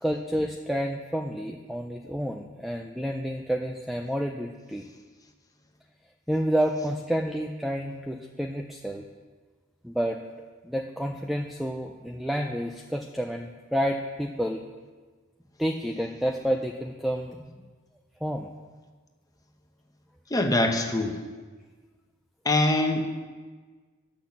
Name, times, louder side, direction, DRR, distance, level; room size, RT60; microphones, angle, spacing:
voice 1, 0.0-4.9 6.3-9.0 9.8-10.2 10.6-14.6 15.6-17.5 18.2-18.5, equal, ahead, 2 dB, 0.4 m, -29 dB
voice 2, 20.3-21.2 22.4-23.0, left 2 dB, 15° left, 3 dB, 0.9 m, -23 dB
10.0 x 6.2 x 7.1 m, 1.4 s
head